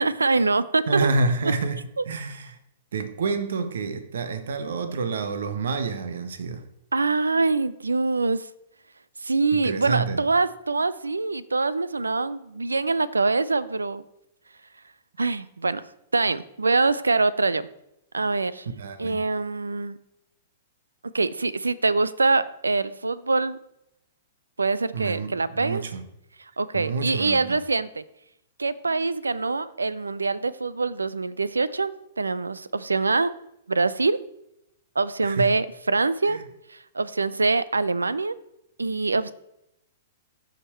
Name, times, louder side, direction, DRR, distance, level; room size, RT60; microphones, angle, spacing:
voice 1, 0.0-1.1 2.0-2.1 6.9-8.5 9.2-14.0 15.2-15.8 16.1-17.7 18.1-18.7 19.0-20.0 21.1-23.6 24.6-25.8 26.6-28.0 28.6-33.3 33.7-34.2 35.0-36.4 36.7-38.3 38.8-39.3, right 3 dB, 90° right, 0.5 m, -24 dB
voice 2, 0.9-1.8 2.0-2.6 2.9-6.7 9.5-10.2 18.7-19.2 24.9-26.0 26.7-27.6 35.2-35.6 36.3-36.4, right 4 dB, 70° right, 1.1 m, -28 dB
14.5 x 5.1 x 4.3 m
hypercardioid pair, 110°, 0 cm